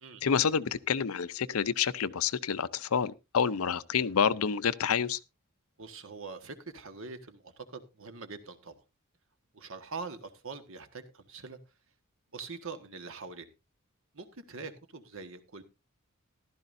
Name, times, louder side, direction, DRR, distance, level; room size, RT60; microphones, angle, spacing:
voice 1, 0.2-5.2, left 7 dB, 70° left, 0.6 m, -28 dB
voice 2, 5.8-8.7 9.5-11.6 12.3-13.5 14.1-15.6, right 4 dB, 65° right, 1.5 m, -43 dB
15.0 x 12.5 x 2.6 m
head